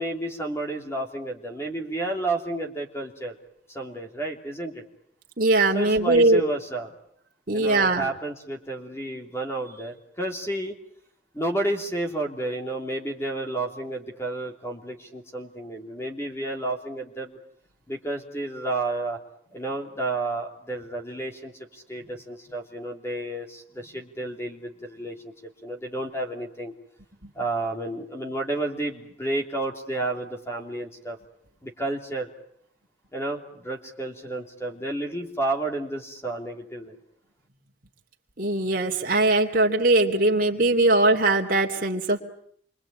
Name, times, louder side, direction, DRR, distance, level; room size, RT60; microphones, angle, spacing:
voice 1, 0.0-3.3 3.7-4.8 5.7-6.9 7.5-10.7 11.3-17.4 17.9-19.2 19.5-25.3 25.6-26.7 27.3-31.2 31.6-32.3 33.1-37.0, right 2 dB, 15° left, 3 dB, 3.1 m, -31 dB
voice 2, 5.4-6.4 7.5-8.1 38.4-42.2, right 2 dB, 50° right, 1 dB, 2.8 m, -21 dB
27.5 x 24.5 x 8.8 m, 0.64 s
head